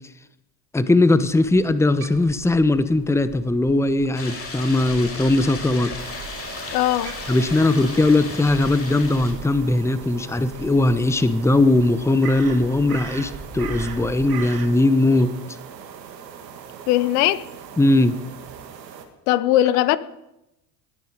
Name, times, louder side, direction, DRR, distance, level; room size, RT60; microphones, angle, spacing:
voice 1, 0.7-5.9 7.3-15.3 17.8-18.2, left 2 dB, 5° left, 0.9 m, -19 dB
Crow, 1.2-14.7, right 6 dB, 45° right, 2.3 m, -40 dB
sound 1, 4.1-9.3, left 3 dB, 30° left, 5.6 m, -35 dB
sound 2, 6.0-19.1, right 7 dB, 85° right, 2.0 m, -41 dB
voice 2, 6.7-7.1 16.9-17.4 19.3-20.0, left 14 dB, 70° left, 0.9 m, -19 dB
20.0 x 9.5 x 5.1 m
hypercardioid pair, 75°, 49 cm